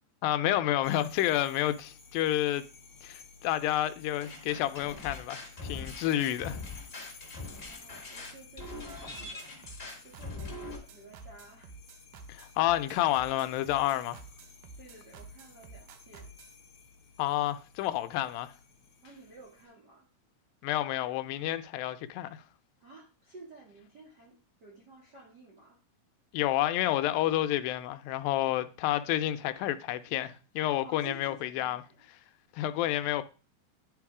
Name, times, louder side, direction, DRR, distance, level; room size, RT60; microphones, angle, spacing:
voice 1, 0.2-2.6 3.0-6.6 12.3-14.2 17.2-18.5 20.6-22.4 26.3-31.8 32.5-33.2, left 13 dB, 85° left, 2.3 m, -29 dB
sound 1, 0.8-19.7, left 5 dB, 50° left, 1.6 m, -55 dB
sound 2, 4.2-10.8, left 2 dB, 30° left, 1.1 m, -42 dB
voice 2, 7.5-9.5 10.0-11.7 14.8-16.3 19.0-20.1 22.8-25.8 30.8-32.0, right 3 dB, 55° right, 1.1 m, -53 dB
sound 3, 8.6-16.6, right 4 dB, 75° right, 2.3 m, -50 dB
10.5 x 3.8 x 4.7 m
omnidirectional pair, 4.1 m